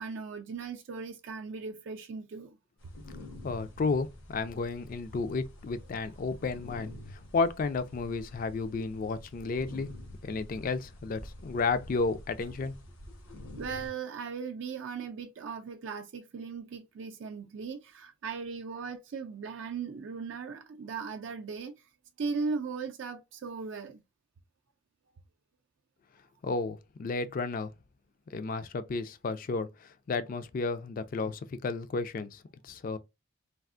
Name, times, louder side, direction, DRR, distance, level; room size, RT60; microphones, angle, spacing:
voice 1, 0.0-2.6 13.6-21.7 22.2-24.0, right 5 dB, 65° right, 0.4 m, -38 dB
sound 1, 2.8-13.9, left 1 dB, 90° left, 1.2 m, -48 dB
voice 2, 3.4-9.9 10.2-12.8 13.3-13.4 26.4-27.7 28.3-33.0, left 4 dB, 45° left, 0.3 m, -32 dB
3.4 x 2.4 x 2.4 m
head